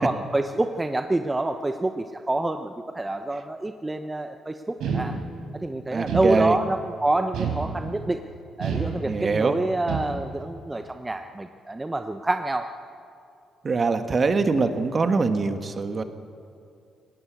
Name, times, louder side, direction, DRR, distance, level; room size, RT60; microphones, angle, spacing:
voice 1, 0.0-5.2 5.5-8.2 8.6-12.7, right 2 dB, 15° right, 7 dB, 0.8 m, -27 dB
sound 1, 4.8-5.6 6.1-6.8 7.3-8.1 8.6-9.4 9.9-10.5, right 5 dB, 80° right, 4.1 m, -29 dB
voice 2, 5.9-6.6 9.1-9.6 13.6-16.0, right 4 dB, 40° right, 8 dB, 1.5 m, -23 dB
18.5 x 18.0 x 8.3 m, 2.5 s
cardioid pair, 90°, 0 cm